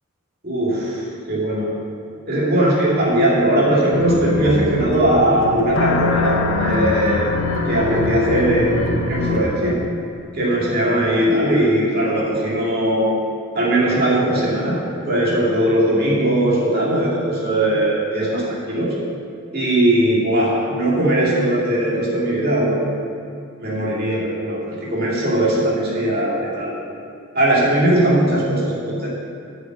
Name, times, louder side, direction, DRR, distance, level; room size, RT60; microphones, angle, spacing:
voice 1, 0.4-1.0 1.3-1.7 2.3-7.3 7.7-9.8 10.3-13.1 13.5-14.8 15.1-19.0 19.5-22.8 23.6-26.7 27.3-29.1, right 1 dB, 45° right, -6 dB, 2.2 m, -19 dB
sound 1, 3.9-9.4, left 3 dB, 65° left, 0.9 m, -23 dB
7.8 x 5.4 x 7.4 m, 2.4 s
head